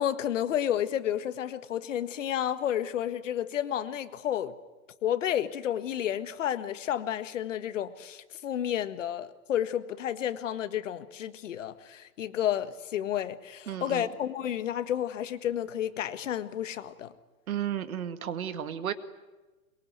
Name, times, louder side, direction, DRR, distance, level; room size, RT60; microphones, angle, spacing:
voice 1, 0.0-4.6 5.0-17.1, left 10 dB, 60° left, 1.7 m, -31 dB
voice 2, 13.7-14.1 17.5-18.9, right 10 dB, 75° right, 2.2 m, -33 dB
23.0 x 23.0 x 9.4 m
hypercardioid pair, 165°, 43 cm